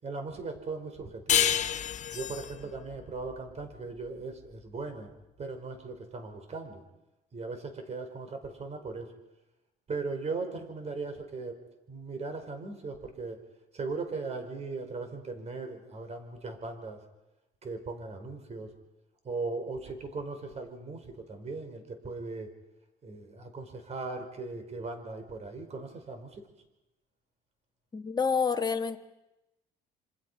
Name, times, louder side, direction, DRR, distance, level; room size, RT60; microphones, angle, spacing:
voice 1, 0.0-1.5 2.1-5.1 5.4-6.8 7.3-9.1 9.9-11.5 11.9-13.4 13.7-17.0 17.6-18.7 19.2-22.5 23.0-26.4, right 3 dB, 40° right, 6 dB, 4.8 m, -38 dB
sound 1, 1.3-4.5, left 9 dB, 45° left, 0.9 m, -30 dB
voice 2, 27.9-29.0, left 5 dB, 25° left, 6 dB, 1.6 m, -28 dB
27.0 x 26.0 x 5.7 m, 0.95 s
cardioid pair, 110°, 17 cm